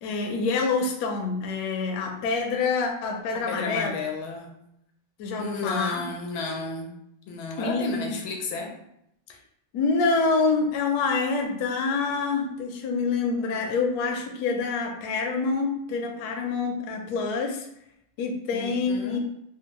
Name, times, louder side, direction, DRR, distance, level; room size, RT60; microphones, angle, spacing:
voice 1, 0.0-3.9 5.2-6.0 7.6-8.2 9.3-9.4 9.7-17.7 18.2-19.2, left 4 dB, 75° left, 2 dB, 0.9 m, -26 dB
voice 2, 3.3-4.5 5.4-7.0 7.3-8.7 18.5-19.2, left 4 dB, 90° left, 2 dB, 1.5 m, -32 dB
3.4 x 2.1 x 3.0 m, 0.78 s
omnidirectional pair, 2.2 m